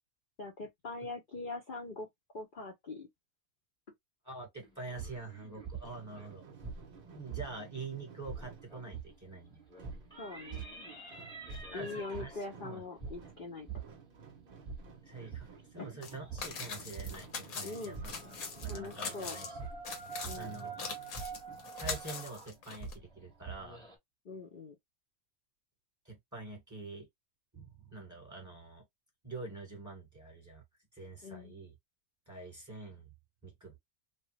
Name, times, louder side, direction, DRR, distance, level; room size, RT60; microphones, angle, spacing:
voice 1, 0.4-2.1 2.3-3.1 10.2-10.7 11.7-13.7 15.8-15.9 17.6-18.0 18.7-19.4 20.2-20.5 24.2-24.8 31.2-31.5, left 3 dB, 45° left, 0.8 m, -42 dB
voice 2, 4.2-6.4 6.9-9.6 11.5-12.8 15.0-19.6 20.0-20.7 21.8-23.8 26.0-27.1 27.5-28.9 29.2-30.6 30.9-31.7 32.3-33.1 33.4-33.8, right 3 dB, 10° right, 1.4 m, -46 dB
sound 1, 4.6-7.8 8.1-24.0, right 5 dB, 5° left, 0.9 m, -45 dB
sound 2, 5.8-21.6, right 6 dB, 50° right, 0.7 m, -56 dB
sound 3, 16.0-16.1 16.4-19.5 19.8-22.9, left 5 dB, 70° left, 1.3 m, -42 dB
3.0 x 2.3 x 3.0 m
omnidirectional pair, 1.6 m